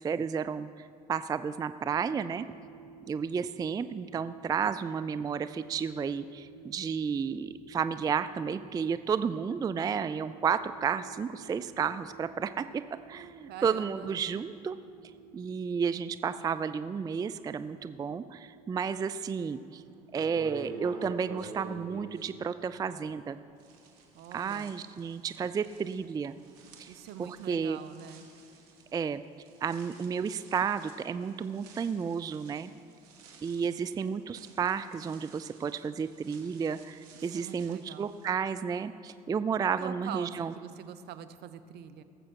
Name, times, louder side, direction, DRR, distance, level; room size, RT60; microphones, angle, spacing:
voice 1, 0.0-2.5 3.1-12.8 13.1-14.8 15.3-19.8 20.1-23.4 24.3-26.4 26.8-26.9 27.2-27.8 28.9-29.2 29.6-32.7 33.4-40.5, right 6 dB, 20° right, 13 dB, 0.3 m, -32 dB
sound 1, 1.8-21.1, right 6 dB, 75° left, 1.3 m, -54 dB
voice 2, 13.5-14.2 24.1-24.7 26.9-28.3 37.1-38.1 39.8-42.0, right 10 dB, 55° right, 12 dB, 0.7 m, -44 dB
sound 2, 19.6-19.7 20.1-23.3 23.6-38.3, right 3 dB, 80° right, 1.5 m, -49 dB
18.5 x 7.5 x 4.6 m, 2.5 s
hypercardioid pair, 70°, 20 cm